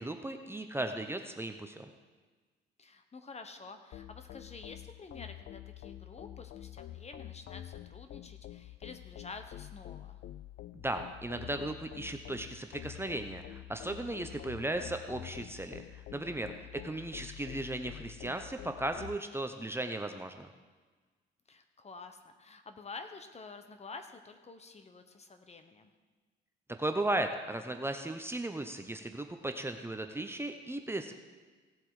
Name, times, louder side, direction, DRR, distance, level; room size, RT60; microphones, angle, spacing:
voice 1, 0.0-1.9 10.8-20.5 26.8-31.1, right 1 dB, 10° right, 6 dB, 0.8 m, -36 dB
voice 2, 2.8-10.2 16.5-17.0 21.5-25.9, left 4 dB, 35° left, 7 dB, 1.2 m, -49 dB
sound 1, 3.9-19.2, left 13 dB, 65° left, 0.4 m, -47 dB
16.5 x 7.5 x 4.9 m, 1.4 s
cardioid pair, 90°, 20 cm